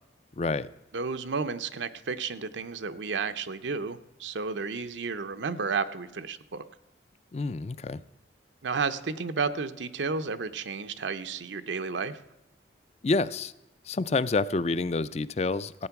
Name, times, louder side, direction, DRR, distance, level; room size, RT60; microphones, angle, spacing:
voice 1, 0.4-0.7 7.3-8.0 13.0-13.5 13.9-15.9, left 3 dB, 35° left, 16 dB, 0.4 m, -28 dB
voice 2, 0.9-6.6 8.6-12.2, right 4 dB, 80° right, 9 dB, 0.7 m, -32 dB
15.0 x 8.9 x 5.9 m, 0.97 s
head